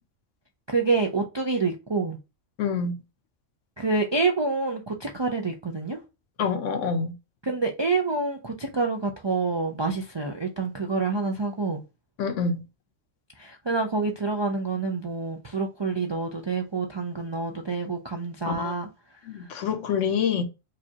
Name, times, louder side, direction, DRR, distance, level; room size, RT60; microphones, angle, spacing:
voice 1, 0.7-2.2 3.8-6.0 7.4-11.8 13.4-18.9, right 3 dB, 45° right, 0.3 m, -27 dB
voice 2, 2.6-3.0 6.4-7.1 12.2-12.6 18.4-18.7 19.2-20.4, left 6 dB, 75° left, 1.1 m, -26 dB
4.9 x 2.4 x 2.8 m
omnidirectional pair, 1.3 m